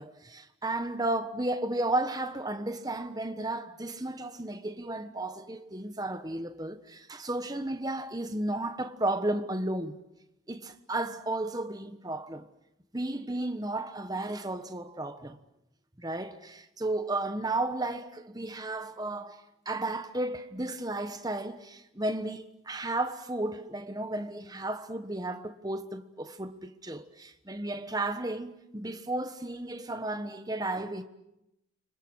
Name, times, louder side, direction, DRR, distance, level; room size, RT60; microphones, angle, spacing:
voice 1, 0.0-10.0 10.5-12.5 12.9-15.4 16.0-31.0, right 2 dB, 20° right, 1.3 m, -33 dB
30.0 x 26.0 x 6.3 m
head